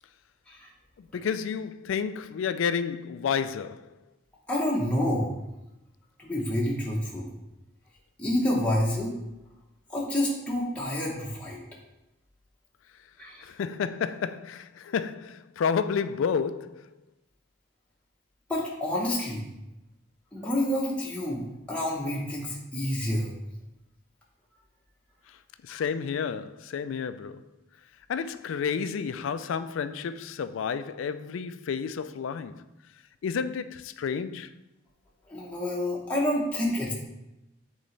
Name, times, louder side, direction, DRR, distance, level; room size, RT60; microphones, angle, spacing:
voice 1, 1.0-4.0 13.4-16.9 25.3-25.4 25.6-27.4 28.1-32.6 33.2-34.5, left 6 dB, 85° left, 0.3 m, -31 dB
voice 2, 4.5-5.3 6.2-7.3 8.2-9.2 9.9-11.6 13.2-13.5 18.5-19.4 20.3-23.3 25.7-25.8 35.3-36.9, left 1 dB, 5° left, 0.9 m, -28 dB
7.5 x 4.0 x 3.2 m
head